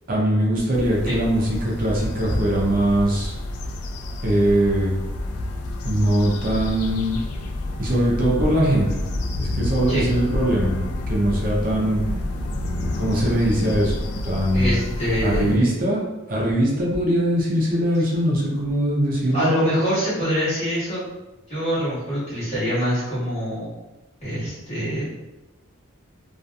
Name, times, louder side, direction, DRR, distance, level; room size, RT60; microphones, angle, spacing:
voice 1, 0.1-3.3 4.2-4.9 5.8-7.2 7.8-8.9 9.3-10.8 11.1-12.0 12.9-14.0 14.2-14.8 15.2-19.5, right 1 dB, 40° right, -4 dB, 0.5 m, -21 dB
sound 1, 0.7-15.6, left 1 dB, 90° left, 0.3 m, -29 dB
voice 2, 14.5-15.7 19.3-21.0 21.5-23.7 24.2-25.1, equal, 30° left, -11 dB, 1.4 m, -24 dB
2.7 x 2.4 x 2.3 m, 1.1 s
head